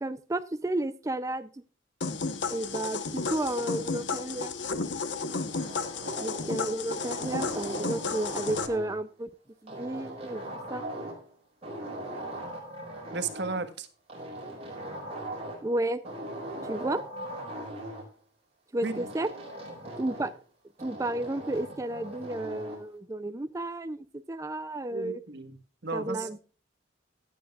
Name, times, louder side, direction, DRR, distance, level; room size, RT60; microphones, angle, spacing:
voice 1, 0.0-1.5 2.5-4.5 6.2-9.3 9.6-10.4 10.7-10.8 15.6-16.0 16.7-17.0 18.7-19.3 20.0-20.3 20.8-25.2 25.9-26.4, right 1 dB, 15° right, 11 dB, 0.4 m, -32 dB
sound 1, 2.0-8.7, left 4 dB, 65° left, 1.0 m, -33 dB
sound 2, 5.0-6.6 7.0-9.0 9.7-11.3 11.6-13.6 14.1-15.7 16.0-18.1 18.8-20.4 20.8-22.8, right 1 dB, 30° right, 5.0 m, -39 dB
voice 2, 13.1-13.9 18.8-19.1 24.9-25.6 25.8-26.3, right 3 dB, 60° right, 9 dB, 1.4 m, -34 dB
15.5 x 9.5 x 2.4 m, 0.37 s
head